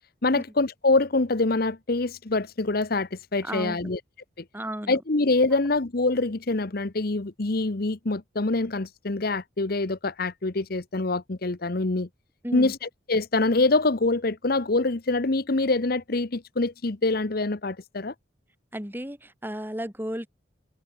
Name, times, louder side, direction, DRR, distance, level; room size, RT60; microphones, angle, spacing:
voice 1, 0.2-4.0 4.4-4.5 4.9-12.1 12.5-18.1, left 2 dB, 50° left, 1.0 m, -25 dB
voice 2, 3.4-3.8 4.5-5.0 12.4-12.7 18.7-20.3, equal, 10° right, 4.8 m, -33 dB
head